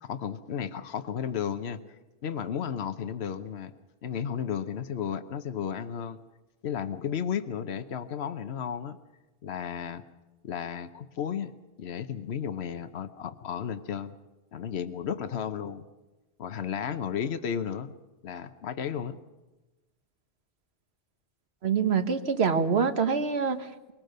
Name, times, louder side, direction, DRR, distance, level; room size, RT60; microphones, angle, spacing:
voice 1, 0.0-1.8 2.2-3.7 4.0-6.2 6.6-9.0 9.4-10.0 10.4-11.5 11.8-14.1 14.5-15.8 16.4-17.9 18.2-19.2, left 8 dB, 85° left, 10 dB, 1.1 m, -33 dB
voice 2, 21.6-23.9, right 6 dB, 80° right, 8 dB, 1.6 m, -26 dB
22.5 x 19.0 x 6.6 m, 1.1 s
omnidirectional pair, 1.1 m